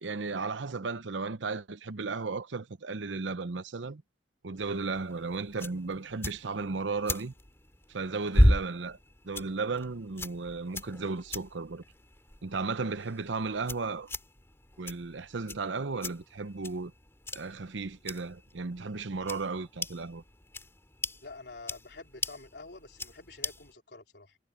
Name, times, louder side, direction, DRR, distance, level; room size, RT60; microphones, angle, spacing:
voice 1, 0.0-4.0 4.4-7.3 7.9-9.0 9.2-11.8 12.4-14.1 14.8-16.9 17.3-20.2, right 4 dB, 85° right, 0.8 m, -35 dB
sound 1, 4.6-23.7, equal, 15° left, 2.6 m, -35 dB
voice 2, 21.2-24.4, left 3 dB, 65° left, 3.8 m, -48 dB
head